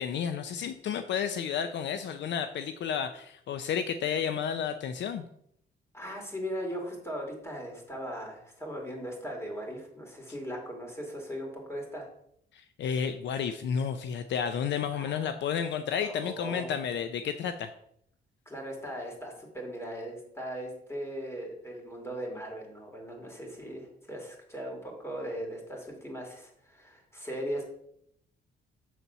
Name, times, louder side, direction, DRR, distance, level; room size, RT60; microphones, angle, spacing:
voice 1, 0.0-5.2 12.5-17.7, left 7 dB, 65° left, 9 dB, 0.5 m, -31 dB
voice 2, 5.9-12.1 14.9-15.2 16.0-16.7 18.5-27.7, equal, 15° left, 1 dB, 2.6 m, -38 dB
7.5 x 4.1 x 5.6 m, 0.71 s
cardioid pair, 90°, 20 cm